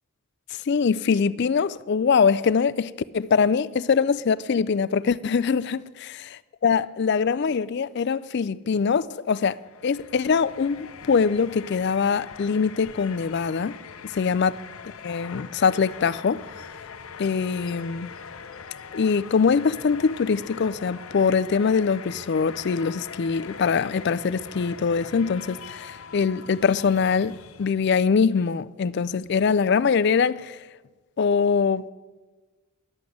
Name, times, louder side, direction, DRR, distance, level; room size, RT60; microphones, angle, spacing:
voice 1, 0.7-6.2 6.6-13.8 14.0-14.6 15.0-16.5 17.2-18.1 18.9-30.6 31.2-31.9, left 5 dB, 50° left, 0.4 m, -23 dB
sound 1, 9.5-28.0, left 6 dB, 70° left, 0.7 m, -42 dB
11.0 x 8.0 x 8.4 m
head